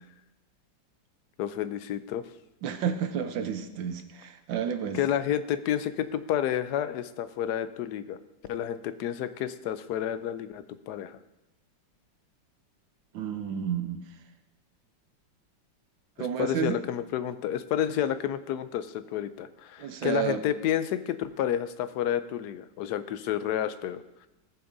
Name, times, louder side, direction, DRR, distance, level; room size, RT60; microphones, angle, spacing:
voice 1, 1.4-2.3 4.9-8.2 8.5-11.2 16.2-24.3, left 10 dB, 70° left, 12 dB, 1.0 m, -30 dB
voice 2, 2.6-5.0 13.1-14.0 16.2-16.8 19.8-20.4, right 8 dB, 85° right, 7 dB, 1.6 m, -31 dB
18.0 x 6.9 x 2.6 m, 0.97 s
omnidirectional pair, 2.0 m